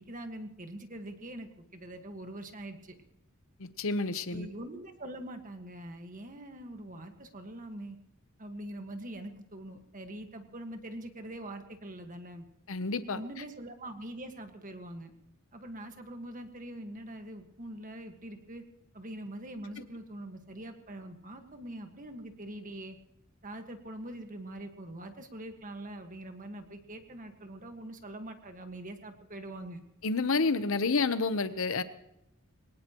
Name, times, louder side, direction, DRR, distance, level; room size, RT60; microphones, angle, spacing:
voice 1, 0.0-2.9 4.3-8.0 8.4-12.4 13.1-15.1 15.5-18.6 18.9-23.0 23.4-29.8, right 1 dB, 40° right, 6 dB, 1.6 m, -43 dB
voice 2, 3.6-4.5 12.7-13.2 30.0-31.8, left 3 dB, 65° left, 11 dB, 0.9 m, -29 dB
22.5 x 19.0 x 3.1 m, 0.82 s
head